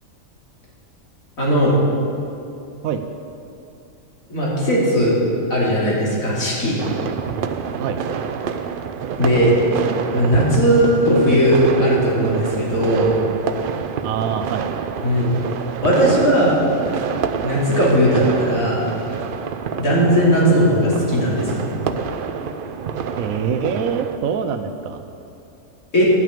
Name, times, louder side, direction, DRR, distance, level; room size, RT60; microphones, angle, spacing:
voice 1, 1.4-1.7 4.3-5.1 5.5-6.7 9.2-9.5 10.1-13.1 15.0-15.3 15.8-16.5 17.4-18.8 19.8-21.8 25.9-26.1, equal, 85° left, -6 dB, 3.3 m, -17 dB
sound 1, 6.8-24.2, right 6 dB, 60° right, 0.5 m, -28 dB
voice 2, 14.0-14.7 23.2-25.0, right 7 dB, 85° right, 8 dB, 1.0 m, -24 dB
11.0 x 6.2 x 8.5 m, 2.6 s
omnidirectional pair, 1.4 m